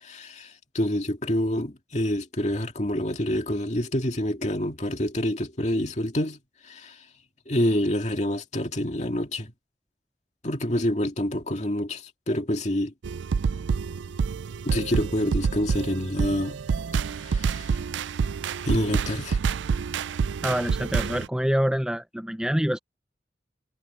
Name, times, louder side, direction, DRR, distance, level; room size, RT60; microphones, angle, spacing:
voice 1, 0.0-6.4 6.6-7.0 7.5-9.5 10.4-12.9 14.6-16.6 17.2-17.7 18.6-19.4, left 1 dB, 40° left, 2.2 m, -27 dB
sound 1, 13.0-21.3, right 5 dB, 85° right, 0.4 m, -28 dB
voice 2, 20.4-22.8, equal, 5° right, 0.5 m, -26 dB
head